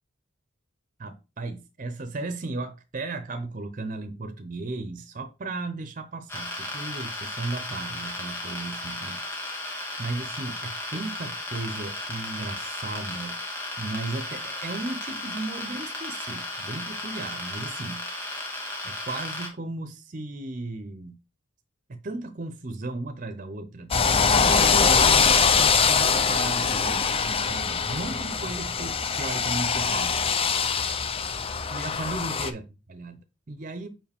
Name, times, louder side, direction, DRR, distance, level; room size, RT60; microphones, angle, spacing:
voice 1, 1.0-9.2 10.0-13.4 13.8-18.0 18.8-21.2 21.9-23.9 24.3-30.3 31.7-32.6 32.9-33.9, right 2 dB, 40° right, 0.7 m, -35 dB
sound 1, 6.3-19.5, left 1 dB, 10° left, 1.8 m, -35 dB
sound 2, 23.9-32.5, left 6 dB, 30° left, 0.5 m, -23 dB
5.6 x 4.8 x 3.5 m
head